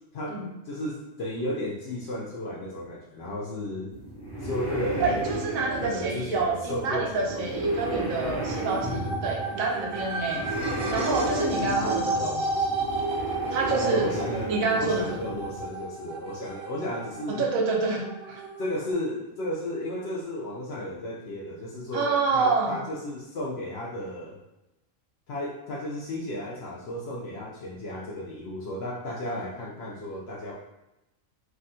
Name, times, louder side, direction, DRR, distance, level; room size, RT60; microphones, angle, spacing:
voice 1, 0.1-3.9 4.4-5.3 5.8-7.7 13.6-17.4 18.6-24.4 25.3-30.5, left 1 dB, 65° left, -4 dB, 0.7 m, -34 dB
sound 1, 3.9-15.7, right 1 dB, 35° left, 0.4 m, -33 dB
voice 2, 5.0-10.4 10.9-12.5 13.5-14.1 14.5-15.2 17.3-18.0 18.3-18.4 21.9-22.7, right 4 dB, 85° right, 0 dB, 1.0 m, -27 dB
sound 2, 7.7-18.9, right 2 dB, 60° right, 0.6 m, -33 dB
3.4 x 2.2 x 2.6 m, 0.92 s
omnidirectional pair, 1.4 m